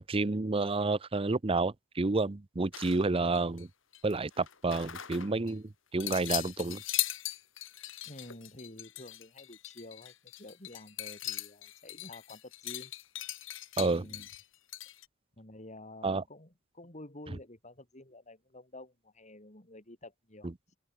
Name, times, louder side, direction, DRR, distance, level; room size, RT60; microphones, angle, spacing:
voice 1, 0.0-3.7 4.0-6.8 13.8-14.1 16.0-16.2, right 3 dB, 25° right, 0.6 m, -30 dB
sound 1, 2.7-3.6 3.9-5.5 6.0-15.1, left 14 dB, 65° left, 3.2 m, -39 dB
voice 2, 8.0-12.9 14.0-14.3 15.4-20.8, left 1 dB, 35° left, 4.6 m, -50 dB
open air
head